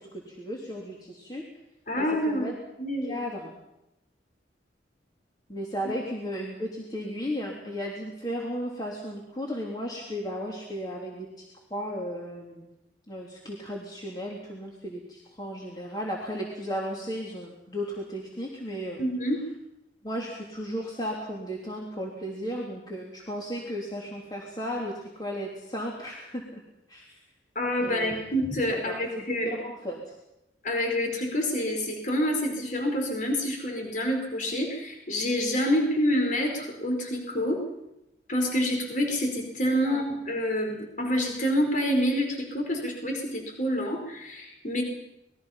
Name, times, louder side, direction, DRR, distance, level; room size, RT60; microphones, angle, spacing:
voice 1, 0.3-1.4 1.9-2.5 3.1-3.5 5.5-11.4 11.7-12.7 13.1-19.0 20.0-26.6 26.9-27.0 27.8-28.3 28.8-30.0 39.8-40.0, equal, 20° left, -2 dB, 3.2 m, -35 dB
voice 2, 1.9-2.5 2.8-3.2 19.0-19.4 27.5-29.5 30.6-37.6 38.3-44.8, equal, 45° left, 2 dB, 4.5 m, -27 dB
27.0 x 21.0 x 5.8 m, 0.89 s
head